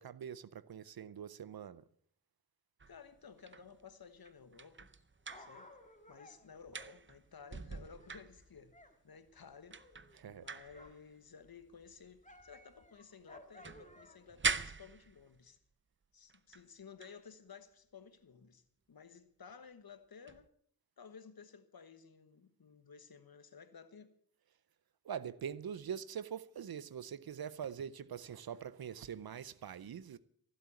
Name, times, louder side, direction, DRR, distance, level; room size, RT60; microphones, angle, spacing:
voice 1, 0.0-1.8 10.1-10.5 25.0-30.2, right 8 dB, 80° right, 0.6 m, -44 dB
sound 1, 2.8-6.1 6.4-8.8 9.4-9.5 9.7-13.0 13.3-15.6 16.3-16.7 17.0-17.2 20.3-20.5, right 4 dB, 35° right, 0.7 m, -43 dB
voice 2, 2.9-4.9 5.4-5.8 6.1-8.8 9.0-9.8 10.2-15.6 16.1-18.6 18.9-20.5 21.0-24.1, left 6 dB, 80° left, 1.3 m, -55 dB
Dog, 4.9-9.0 9.2-11.1 11.4-14.4 15.0-15.1, left 1 dB, 20° left, 1.7 m, -59 dB
15.0 x 7.9 x 8.2 m
wide cardioid pair, 65°, 36 cm